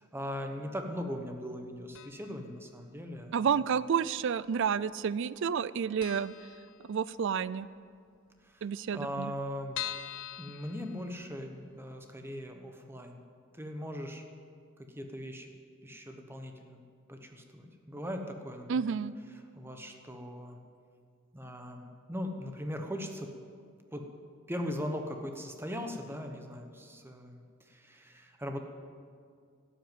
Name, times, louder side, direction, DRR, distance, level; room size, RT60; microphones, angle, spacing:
voice 1, 0.0-3.3 8.4-9.8 10.4-13.2 13.5-14.2 14.9-15.5 15.8-16.8 17.1-19.0 19.6-20.6 21.3-23.3 23.9-24.0 24.5-28.6, equal, 10° right, 4 dB, 1.1 m, -39 dB
sound 1, 1.9-2.5 2.7-2.8 3.8-4.5 4.8-4.9 5.2-5.3 5.6-5.7 6.0-7.3 7.7-7.8 8.1-8.2 8.4-8.5 9.0-11.6 12.0-12.1 12.5-12.6, left 12 dB, 65° left, 0.5 m, -43 dB
voice 2, 3.3-6.3 6.9-7.7 8.6-9.3 18.7-19.1, right 7 dB, 60° right, 18 dB, 0.4 m, -30 dB
12.5 x 8.1 x 9.2 m, 2.2 s
head